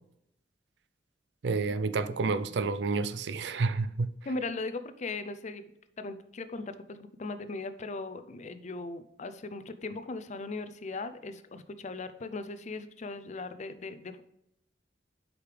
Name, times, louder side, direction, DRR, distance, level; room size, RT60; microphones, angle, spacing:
voice 1, 1.4-4.1, right 4 dB, 70° right, 0.5 m, -29 dB
voice 2, 4.3-5.7 6.0-14.2, left 3 dB, 40° left, 0.5 m, -38 dB
8.2 x 5.0 x 3.3 m
head